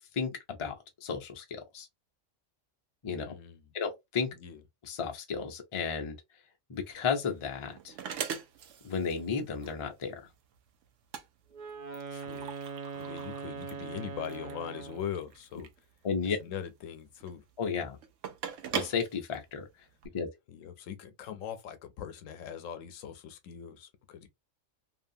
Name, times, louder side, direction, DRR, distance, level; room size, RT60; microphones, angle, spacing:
voice 1, 0.1-0.7 1.0-1.9 3.0-3.3 3.7-4.3 4.9-6.2 6.7-7.9 8.8-10.2 16.0-16.4 17.6-18.0 18.7-19.7 20.1-20.3, left 6 dB, 40° left, 0.4 m, -33 dB
voice 2, 3.2-3.7 4.3-4.6 12.1-12.5 12.9-15.7 16.2-17.5 20.5-24.3, left 9 dB, 80° left, 1.0 m, -41 dB
sound 1, 6.8-20.1, right 8 dB, 75° right, 0.9 m, -42 dB
Wind instrument woodwind instrument, 11.5-15.2, right 6 dB, 45° right, 0.7 m, -41 dB
2.8 x 2.3 x 2.6 m
omnidirectional pair, 1.3 m